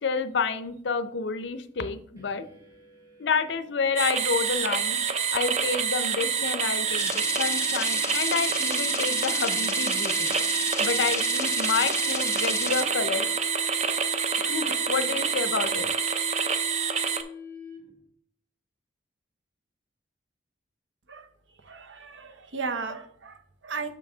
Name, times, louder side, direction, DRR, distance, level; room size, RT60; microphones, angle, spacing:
voice 1, 0.0-2.5 3.2-5.0 5.3-10.4 10.8-13.3 14.4-15.9, left 5 dB, 65° left, 12 dB, 0.5 m, -29 dB
sound 1, 2.2-18.1, left 6 dB, 15° right, 1.5 m, -44 dB
sound 2, 4.0-17.2, right 6 dB, 35° right, 0.5 m, -27 dB
sound 3, 7.0-12.8, left 4 dB, 15° left, 0.6 m, -33 dB
voice 2, 21.6-24.0, right 4 dB, 75° right, 9 dB, 0.8 m, -35 dB
6.5 x 5.3 x 3.8 m, 0.63 s
head